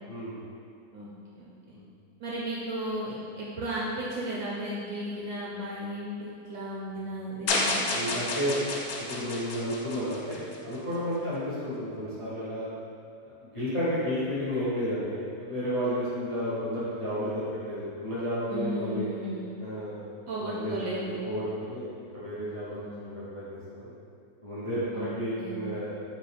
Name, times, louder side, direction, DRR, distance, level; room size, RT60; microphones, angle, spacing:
voice 1, 0.1-0.4 1.7-1.8 7.9-8.5 9.0-12.7 13.5-19.1 19.6-23.9 24.4-26.1, equal, 30° left, -10 dB, 0.6 m, -32 dB
voice 2, 1.3-1.8 2.2-7.8 18.5-19.4 20.3-21.2 22.7-23.1 24.9-25.1 25.4-25.6, equal, 70° right, -6 dB, 0.9 m, -35 dB
sound 1, 7.5-10.8, left 2 dB, 70° left, 0.9 m, -30 dB
5.3 x 2.3 x 3.3 m, 2.5 s
omnidirectional pair, 1.8 m